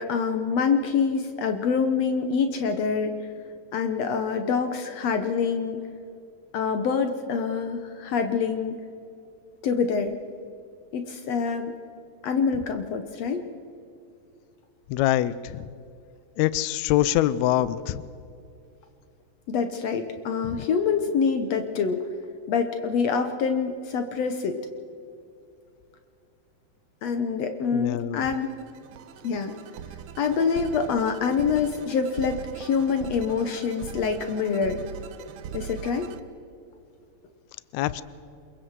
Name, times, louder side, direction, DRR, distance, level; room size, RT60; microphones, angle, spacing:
voice 1, 0.0-3.3 3.7-5.8 6.5-8.8 9.6-10.2 10.9-11.8 12.2-13.4 19.5-22.1 22.5-24.6 27.0-28.5 29.2-29.6 30.2-34.8 35.5-36.1, left 5 dB, 65° left, 7 dB, 1.7 m, -26 dB
voice 2, 14.9-15.7 16.4-18.1 20.4-20.6 27.7-28.2 37.7-38.0, left 13 dB, 85° left, 16 dB, 1.6 m, -24 dB
sound 1, 28.3-36.2, right 10 dB, 75° right, 2.2 m, -41 dB
28.0 x 22.0 x 4.7 m, 2.6 s
omnidirectional pair, 4.0 m